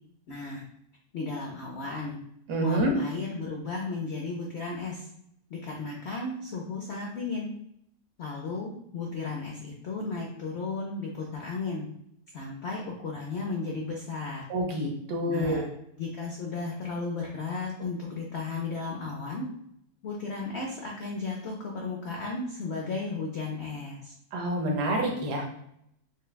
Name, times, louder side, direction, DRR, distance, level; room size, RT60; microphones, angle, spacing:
voice 1, 0.3-0.6 1.1-2.2 2.6-5.1 5.5-7.5 8.2-11.8 12.3-14.4 15.3-15.7 16.0-19.5 20.0-24.1, left 3 dB, 60° left, -1 dB, 0.7 m, -34 dB
voice 2, 2.5-3.0 14.5-15.6 24.3-25.4, right 1 dB, 75° right, 0 dB, 1.3 m, -27 dB
6.5 x 2.2 x 2.2 m, 0.74 s
omnidirectional pair, 1.7 m